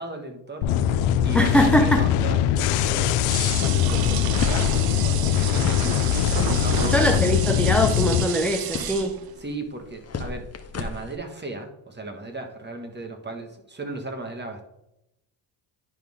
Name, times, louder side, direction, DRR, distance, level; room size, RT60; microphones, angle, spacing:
voice 1, 0.0-6.3 6.6-7.2 9.4-14.6, right 2 dB, 20° right, 4 dB, 1.6 m, -36 dB
sound 1, 0.6-8.2, left 10 dB, 85° left, 0.7 m, -22 dB
voice 2, 1.3-2.0 6.9-9.1, equal, 5° left, 3 dB, 0.7 m, -21 dB
sound 2, 3.3-9.4, right 9 dB, 50° right, 0.7 m, -32 dB
sound 3, 4.4-11.2, left 4 dB, 30° left, 1.0 m, -34 dB
10.5 x 4.4 x 3.6 m, 0.86 s
supercardioid pair, 70°, 49 cm